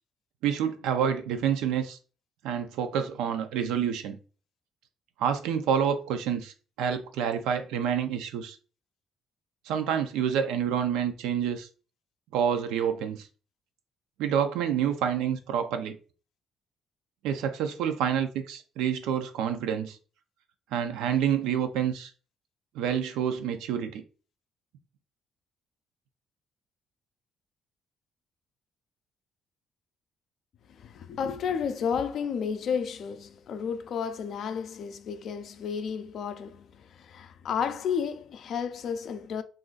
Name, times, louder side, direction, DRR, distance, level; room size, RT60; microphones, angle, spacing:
voice 1, 0.4-2.0 2.4-4.2 5.2-8.6 9.7-11.7 12.3-13.3 14.2-16.0 17.2-20.0 20.7-22.1 22.7-24.0, right 8 dB, 90° right, 0.4 m, -28 dB
voice 2, 30.7-39.4, left 7 dB, 60° left, 0.4 m, -32 dB
2.5 x 2.4 x 3.8 m
cardioid pair, 100°, 0 cm